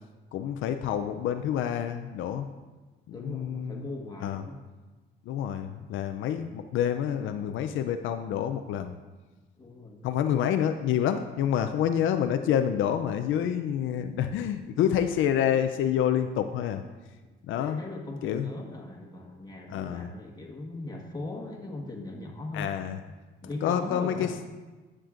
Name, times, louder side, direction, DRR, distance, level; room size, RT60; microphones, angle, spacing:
voice 1, 0.3-2.5 3.1-3.9 4.2-4.4 5.3-9.0 10.0-16.8 17.5-17.8 18.2-18.5 19.7-20.1 22.5-23.0 23.6-24.3, left 9 dB, 80° left, 7 dB, 0.4 m, -28 dB
voice 2, 3.1-4.6 9.6-10.1 17.6-22.7 23.4-24.4, left 2 dB, 20° left, 0 dB, 1.4 m, -39 dB
10.5 x 7.4 x 2.5 m, 1.3 s
cardioid pair, 90°, 20 cm